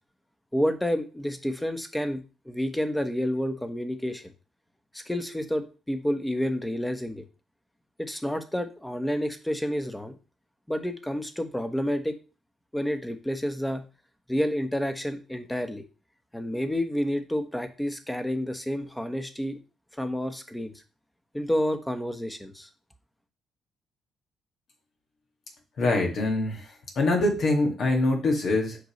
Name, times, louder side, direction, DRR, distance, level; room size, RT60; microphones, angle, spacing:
voice 1, 0.5-4.2 4.9-7.2 8.0-10.1 10.7-12.1 12.7-13.8 14.3-15.8 16.3-19.6 20.0-20.7 21.3-22.7, equal, 5° left, 8 dB, 1.1 m, -29 dB
voice 2, 25.8-26.7 27.0-28.8, left 2 dB, 60° left, 1 dB, 1.8 m, -24 dB
7.9 x 5.3 x 3.1 m, 0.33 s
cardioid pair, 90°, 0 cm